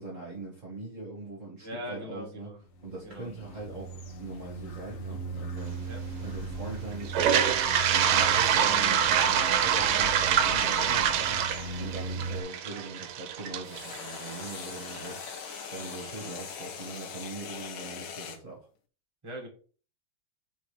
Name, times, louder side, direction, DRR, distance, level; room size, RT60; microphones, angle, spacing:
voice 1, 0.0-2.5 2.8-5.9 6.2-18.7, right 3 dB, 40° right, -2 dB, 2.0 m, -41 dB
voice 2, 1.6-2.6 3.0-3.3 5.9-6.0 9.3-9.7 12.0-12.2 19.2-19.5, equal, 15° right, -1 dB, 2.0 m, -41 dB
sound 1, 2.7-12.4, right 2 dB, 50° left, 1.0 m, -38 dB
Toilet flush, 7.0-15.0, right 9 dB, 80° right, 1.5 m, -25 dB
sound 2, 8.1-12.5 13.6-18.4, left 8 dB, 75° left, 1.6 m, -42 dB
5.2 x 4.7 x 5.0 m, 0.39 s
omnidirectional pair, 2.3 m